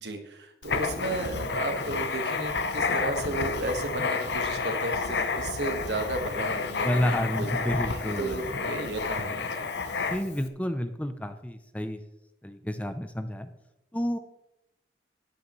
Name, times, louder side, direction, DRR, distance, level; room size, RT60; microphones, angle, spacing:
voice 1, 0.0-9.7, right 2 dB, 70° right, 5 dB, 1.5 m, -34 dB
Writing, 0.6-10.4, left 4 dB, 70° left, 0.8 m, -30 dB
voice 2, 6.8-9.0 10.1-12.0 12.4-13.5 13.9-14.2, equal, 10° left, 9 dB, 0.5 m, -30 dB
13.5 x 9.8 x 3.1 m, 0.93 s
head